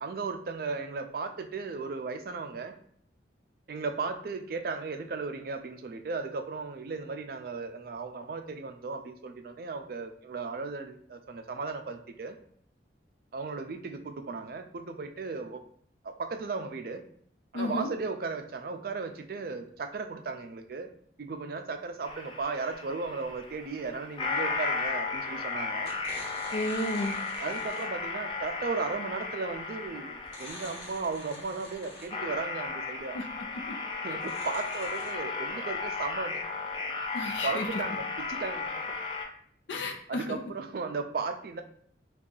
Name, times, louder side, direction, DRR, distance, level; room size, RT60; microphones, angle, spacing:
voice 1, 0.0-2.7 3.7-12.4 13.3-15.6 16.0-17.0 17.5-20.9 21.2-25.9 27.4-33.2 34.0-36.4 37.4-38.7 40.1-41.6, right 4 dB, 55° right, 6 dB, 0.4 m, -36 dB
voice 2, 17.5-17.9 26.5-27.1 33.1-33.2 33.7-33.8 37.1-37.8 39.7-40.4, left 1 dB, 85° left, 5 dB, 0.5 m, -32 dB
sound 1, 22.0-39.3, left 4 dB, 30° left, 0.4 m, -35 dB
sound 2, 24.9-25.3 25.8-28.0 30.2-32.3 34.1-35.1, left 1 dB, 60° left, 1.0 m, -47 dB
2.6 x 2.3 x 3.8 m, 0.63 s
head